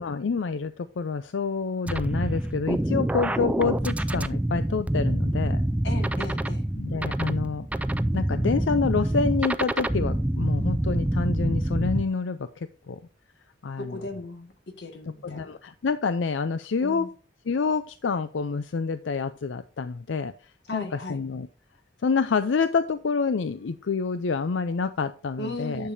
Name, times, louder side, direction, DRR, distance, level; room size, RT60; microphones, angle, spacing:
voice 1, 0.0-5.6 6.8-7.7 8.1-13.0 13.6-14.0 15.2-17.1 17.5-20.3 20.7-21.5 22.0-25.9, left 5 dB, 90° left, 0.5 m, -27 dB
sound 1, 1.9-12.0, right 1 dB, 10° right, 0.3 m, -26 dB
voice 2, 5.8-6.7 13.8-15.6 16.8-17.1 20.7-21.2 25.4-25.9, left 1 dB, 65° left, 1.7 m, -36 dB
10.0 x 6.7 x 2.7 m
head